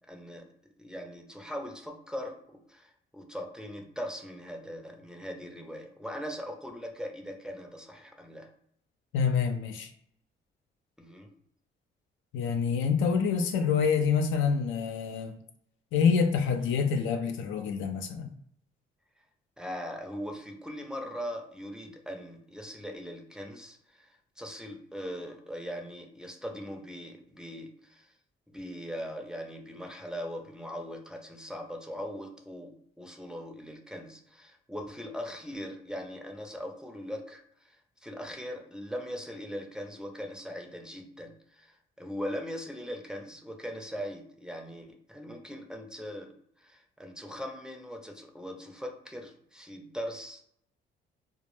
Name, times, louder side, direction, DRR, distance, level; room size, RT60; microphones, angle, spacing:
voice 1, 0.1-0.5 0.8-8.5 11.0-11.3 19.6-28.1 28.5-50.4, equal, 5° right, 0.4 m, -40 dB
voice 2, 9.1-9.9 12.3-15.4 15.9-18.3, left 6 dB, 80° left, 0.4 m, -27 dB
2.1 x 2.0 x 3.1 m
cardioid pair, 90°, 20 cm